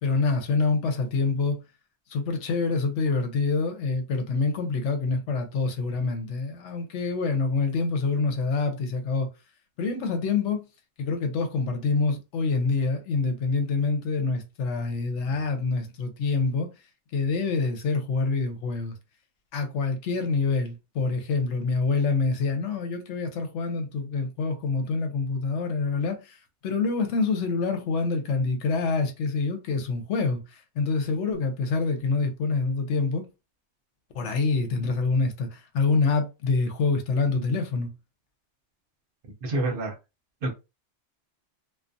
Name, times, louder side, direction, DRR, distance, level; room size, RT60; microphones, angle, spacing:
voice 1, 0.0-1.6 2.1-9.3 9.8-10.7 11.0-16.7 17.1-19.0 19.5-33.3 34.1-37.9, left 4 dB, 80° left, 0.9 m, -26 dB
voice 2, 39.4-39.9 40.4-40.5, right 2 dB, 55° right, 0.8 m, -27 dB
2.3 x 2.2 x 2.5 m
omnidirectional pair, 1.2 m